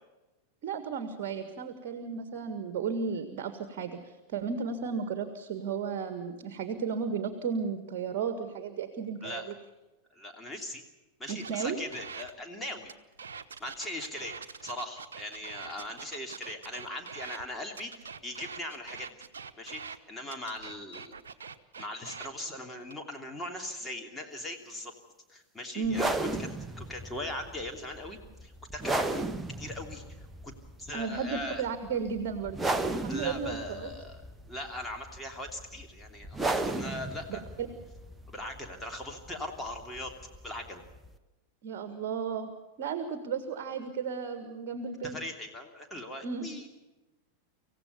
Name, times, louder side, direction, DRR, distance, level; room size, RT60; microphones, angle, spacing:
voice 1, 0.6-9.5 11.3-11.8 25.8-26.0 30.9-32.6 32.9-33.9 37.3-37.7 41.6-42.5 42.8-45.2 46.2-46.5, right 6 dB, 45° right, 9 dB, 1.7 m, -34 dB
voice 2, 10.1-10.8 11.2-12.9 13.6-14.4 14.6-19.2 19.6-21.1 21.8-24.9 25.3-29.1 29.6-30.5 30.8-31.6 33.1-34.2 34.5-37.4 38.3-40.1 40.4-40.8 45.0-46.7, left 1 dB, 10° left, 2 dB, 3.0 m, -40 dB
sound 1, 11.3-12.3 12.8-17.4 17.7-20.0 20.3-22.3 22.8-23.2, right 5 dB, 65° right, 1.1 m, -44 dB
sound 2, 25.8-41.2, right 2 dB, 10° right, 1.1 m, -36 dB
26.0 x 16.0 x 7.0 m, 1.1 s
figure-of-eight pair, 90°, 0 cm